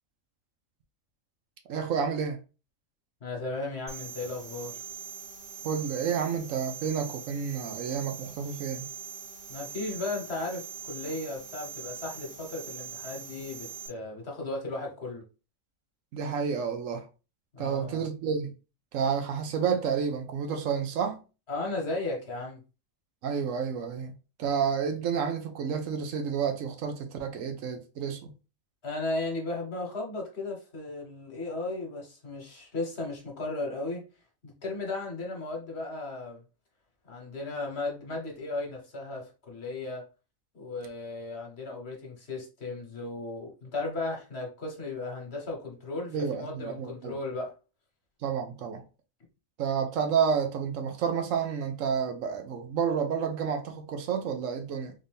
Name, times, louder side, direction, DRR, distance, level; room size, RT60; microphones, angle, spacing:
voice 1, 1.7-2.4 5.6-8.9 16.1-17.1 17.6-18.5 18.9-21.2 23.2-24.1 24.4-28.3 46.1-47.1 48.2-48.8 49.6-54.9, right 7 dB, 80° right, 1.1 m, -30 dB
voice 2, 3.2-4.8 9.5-15.2 17.5-18.0 21.5-22.6 28.8-34.1 34.4-36.4 37.1-40.0 40.5-47.5, left 2 dB, 55° left, 1.3 m, -35 dB
sound 1, 3.9-13.9, right 7 dB, 60° right, 1.5 m, -42 dB
3.7 x 2.6 x 3.3 m
omnidirectional pair, 1.4 m